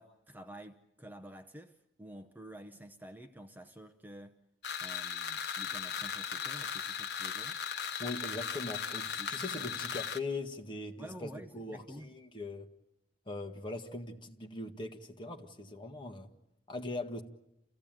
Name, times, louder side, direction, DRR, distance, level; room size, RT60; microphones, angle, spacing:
voice 1, 0.0-4.4 4.8-7.6 9.2-9.7 11.0-12.1, equal, 10° right, 0.8 m, -50 dB
sound 1, 4.6-10.2, left 7 dB, 70° left, 1.0 m, -37 dB
voice 2, 8.0-12.7 13.3-16.3 16.7-17.2, left 2 dB, 30° left, 1.7 m, -41 dB
29.0 x 16.0 x 9.0 m
head